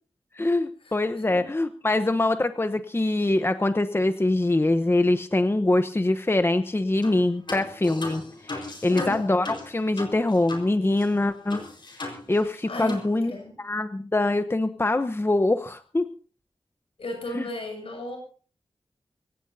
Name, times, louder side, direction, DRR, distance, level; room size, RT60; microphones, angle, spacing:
voice 1, 0.4-11.6 12.0-13.3 13.6-16.1 17.4-17.5, left 2 dB, 25° left, 10 dB, 0.9 m, -24 dB
sound 1, 7.0-7.2 7.5-10.7 11.0-11.1 11.5-12.6 12.9-13.1, left 2 dB, 55° left, 4.7 m, -37 dB
voice 2, 8.9-9.3 12.7-13.0 13.3-13.5 17.0-18.2, left 1 dB, 80° left, 2 dB, 7.2 m, -34 dB
25.0 x 15.5 x 2.8 m, 0.40 s
wide cardioid pair, 65°, 10 cm